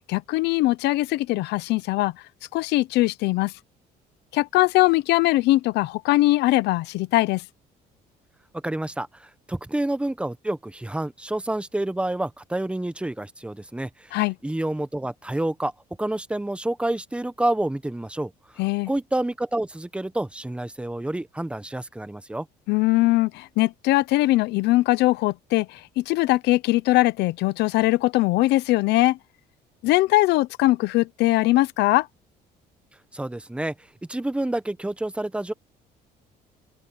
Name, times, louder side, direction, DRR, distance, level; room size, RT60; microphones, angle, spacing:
voice 1, 0.1-2.1 2.5-3.5 4.3-7.4 14.1-14.3 18.6-18.9 22.7-29.2 29.8-32.1, left 18 dB, 85° left, 0.8 m, -21 dB
voice 2, 8.5-14.2 14.4-15.7 16.0-18.3 18.9-22.5 33.1-33.7 34.1-35.5, right 1 dB, 5° right, 1.2 m, -28 dB
open air
cardioid pair, 110°, 17 cm